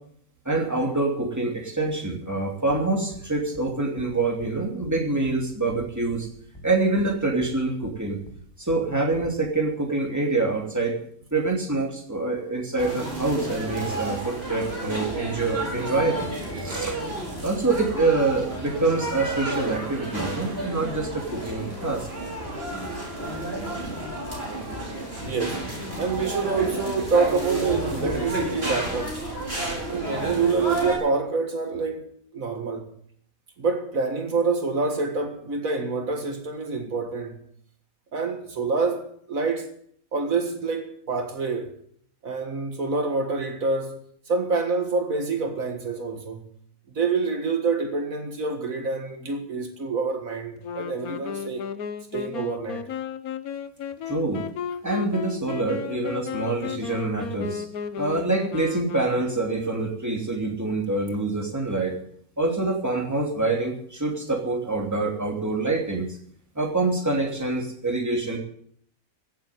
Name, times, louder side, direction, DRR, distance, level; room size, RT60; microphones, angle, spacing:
voice 1, 0.4-6.3 6.6-8.2 8.6-10.9 11.3-16.3 16.6-17.0 17.4-22.1 54.1-54.4 54.8-57.6 58.0-62.0 62.4-66.2 66.5-68.4, right 3 dB, 10° right, 2.8 m, -26 dB
sound 1, 2.7-2.8 3.1-3.2 3.5-3.7 4.0-4.1 4.4-4.5 4.8-5.0 5.3-5.4 5.7-6.2 6.5-6.7 7.0-7.1 7.4-7.5 7.8-8.0 8.3-8.4 8.7-8.8 9.1-9.3, equal, 15° left, 2.4 m, -44 dB
sound 2, 12.8-31.0, right 1 dB, 40° right, 5.5 m, -31 dB
voice 2, 25.2-25.7 26.0-29.2 29.9-32.9 33.6-37.4 38.1-39.7 40.1-41.8 42.2-44.0 44.3-46.5 46.9-51.6 52.1-52.9, right 4 dB, 70° right, 2.1 m, -27 dB
Wind instrument woodwind instrument, 50.6-59.6, left 8 dB, 85° left, 1.4 m, -34 dB
16.0 x 7.6 x 9.5 m
omnidirectional pair, 1.5 m